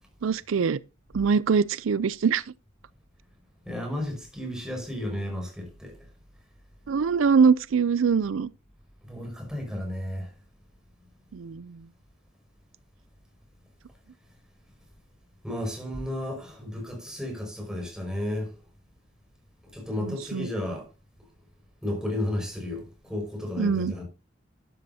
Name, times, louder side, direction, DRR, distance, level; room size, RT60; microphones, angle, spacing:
voice 1, 0.2-0.8 1.1-2.4 6.9-8.5 11.3-11.8 20.0-20.5 23.6-23.9, right 5 dB, 80° right, 0.4 m, -23 dB
voice 2, 3.7-6.0 9.0-10.3 15.4-18.5 19.7-20.9 21.8-24.0, left 1 dB, 5° right, 5.4 m, -33 dB
12.0 x 11.5 x 2.7 m
head